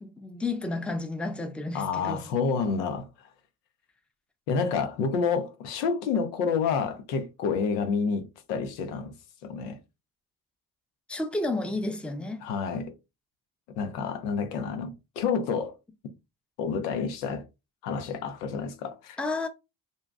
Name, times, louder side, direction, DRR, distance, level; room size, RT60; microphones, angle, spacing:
voice 1, 0.0-2.3 11.1-12.4 19.2-19.5, left 2 dB, ahead, 0.5 m, -31 dB
voice 2, 1.7-3.1 4.5-9.1 9.4-9.8 12.4-12.9 13.8-15.8 16.6-17.4 17.8-19.2, left 5 dB, 90° left, 0.6 m, -29 dB
2.6 x 2.2 x 3.4 m
hypercardioid pair, 55°, 46 cm